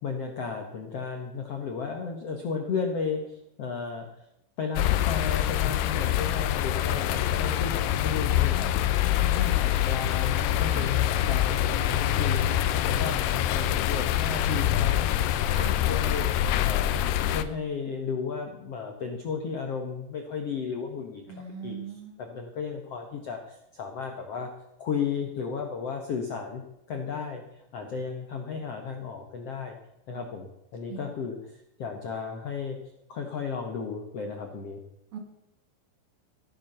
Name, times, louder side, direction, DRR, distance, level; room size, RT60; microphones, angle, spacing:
voice 1, 0.0-4.3 4.6-12.5 12.8-16.9 17.3-24.5 24.8-26.6 26.9-29.8 30.1-32.8 33.1-34.8, left 5 dB, 65° left, 3 dB, 1.6 m, -34 dB
sound 1, 4.8-17.4, left 11 dB, 90° left, 2.9 m, -25 dB
voice 2, 21.3-22.2 30.9-31.1 35.1-35.2, right 6 dB, 65° right, 4 dB, 3.8 m, -39 dB
15.5 x 9.1 x 6.7 m, 0.85 s
omnidirectional pair, 4.6 m